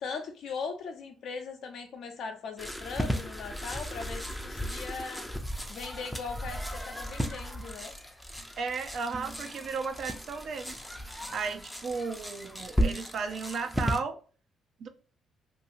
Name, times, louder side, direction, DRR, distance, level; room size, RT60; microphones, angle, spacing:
voice 1, 0.0-5.3 5.7-7.9, left 5 dB, 75° left, 0.7 m, -39 dB
sound 1, 2.6-14.0, equal, 5° left, 0.5 m, -35 dB
voice 2, 8.6-10.7 11.1-14.2 14.8-14.9, right 5 dB, 60° right, 0.6 m, -34 dB
2.7 x 2.7 x 2.6 m
cardioid pair, 90°, 0 cm